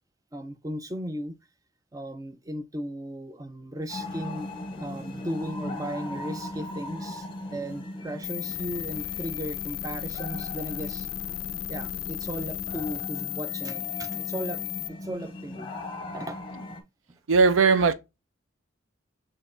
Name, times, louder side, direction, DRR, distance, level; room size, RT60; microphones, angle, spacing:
voice 1, 0.3-1.4 1.9-4.5 4.8-11.1 11.7-14.6 14.9-15.7 16.1-16.4 17.1-17.2, equal, 15° right, 0.4 m, -36 dB
sound 1, 3.9-16.8, left 1 dB, 25° left, 0.7 m, -38 dB
sound 2, 8.2-14.9, left 17 dB, 70° left, 0.3 m, -35 dB
voice 2, 17.3-17.9, right 4 dB, 80° right, 0.5 m, -18 dB
6.1 x 2.9 x 2.5 m
head